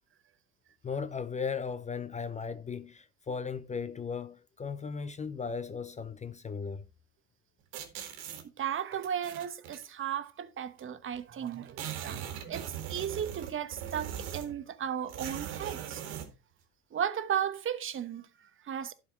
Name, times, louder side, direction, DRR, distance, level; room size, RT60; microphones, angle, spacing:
voice 1, 0.8-6.8, left 5 dB, 15° left, 0.5 m, -36 dB
sound 1, 7.7-8.4 9.0-9.8 10.8-10.9 11.1-11.2 11.5-14.6 15.1-16.3, right 10 dB, 60° right, 2.1 m, -40 dB
voice 2, 8.6-16.0 16.9-18.9, right 9 dB, 25° right, 1.1 m, -35 dB
11.5 x 5.1 x 4.2 m
hypercardioid pair, 80°, 46 cm